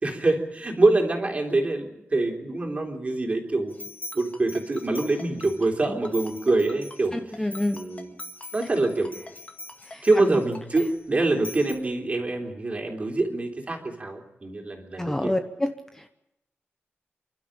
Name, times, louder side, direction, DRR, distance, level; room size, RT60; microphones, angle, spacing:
voice 1, 0.0-3.8 4.1-7.5 7.7-8.2 8.5-9.1 10.0-15.3, right 2 dB, 35° right, 2 dB, 3.6 m, -25 dB
sound 1, 3.7-5.7 6.1-11.7, left 2 dB, 50° left, 4.7 m, -43 dB
Ringtone, 4.1-10.8, left 2 dB, 30° left, 2.0 m, -43 dB
voice 2, 7.1-7.8 9.9-10.4 15.0-15.7, left 1 dB, 10° left, 6 dB, 0.9 m, -27 dB
29.0 x 12.5 x 8.9 m, 0.87 s
wide cardioid pair, 155°, 4 cm